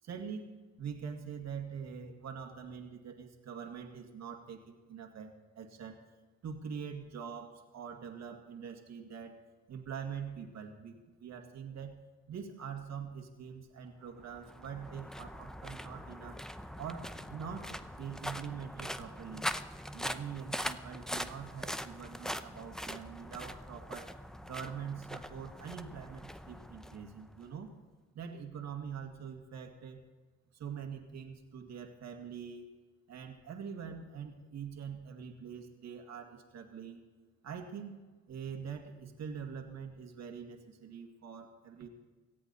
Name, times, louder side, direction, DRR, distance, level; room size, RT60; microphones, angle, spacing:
voice 1, 0.0-0.5 0.8-5.3 5.6-6.0 6.4-9.4 9.7-12.0 12.3-16.4 16.8-19.5 19.9-24.1 24.5-27.7 28.1-30.0 30.5-32.7 33.1-37.0 37.4-38.0 38.3-41.9, right 7 dB, 60° right, 3 dB, 2.1 m, -44 dB
sound 1, 14.2-27.5, equal, ahead, 0.7 m, -42 dB
18.0 x 14.0 x 4.2 m, 1.3 s
cardioid pair, 90°, 30 cm